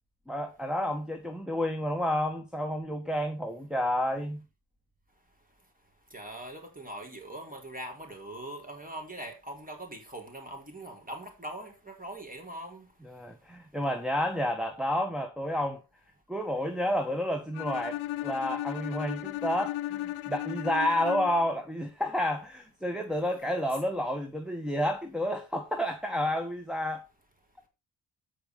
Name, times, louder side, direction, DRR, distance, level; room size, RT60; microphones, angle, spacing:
voice 1, 0.3-4.4 13.0-15.8 16.3-27.1, equal, ahead, 1.8 m, -30 dB
voice 2, 6.1-12.9, right 1 dB, 15° right, 4.6 m, -42 dB
Bowed string instrument, 17.5-21.5, left 15 dB, 90° left, 0.6 m, -35 dB
9.0 x 6.7 x 4.9 m
cardioid pair, 65°, 47 cm